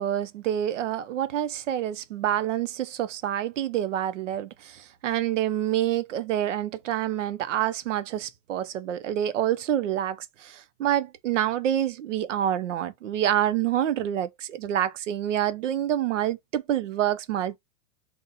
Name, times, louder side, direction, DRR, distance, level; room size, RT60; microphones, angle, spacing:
voice 1, 0.0-17.6, right 11 dB, 85° right, 0.8 m, -27 dB
4.1 x 2.4 x 3.9 m
supercardioid pair, 175°, 36 cm